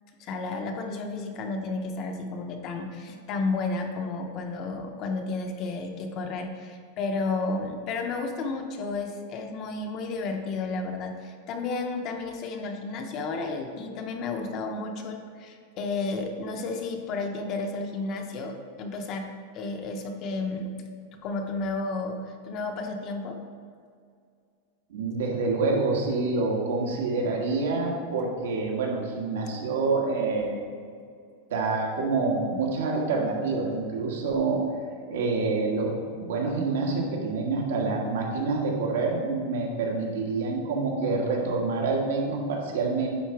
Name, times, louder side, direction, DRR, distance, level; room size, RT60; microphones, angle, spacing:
voice 1, 0.2-20.7 21.2-23.4, left 3 dB, 30° left, 4 dB, 0.6 m, -32 dB
voice 2, 24.9-30.6 31.5-34.6 35.1-35.9 36.2-43.2, right 3 dB, 85° right, -1 dB, 1.6 m, -27 dB
9.3 x 3.9 x 4.6 m, 2.2 s
supercardioid pair, 175°, 0 cm